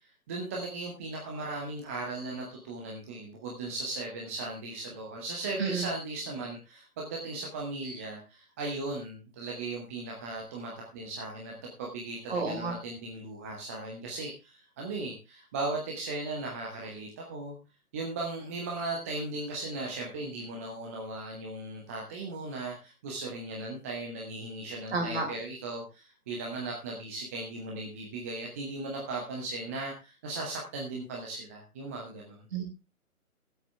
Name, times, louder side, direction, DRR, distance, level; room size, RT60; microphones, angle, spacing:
voice 1, 0.3-17.6 17.9-32.4, right 2 dB, 10° right, -2 dB, 0.9 m, -37 dB
voice 2, 12.3-12.7 24.9-25.2 32.5-32.6, right 4 dB, 45° right, 2 dB, 4.7 m, -30 dB
18.5 x 8.1 x 3.3 m, 0.27 s
figure-of-eight pair, 140°, 44 cm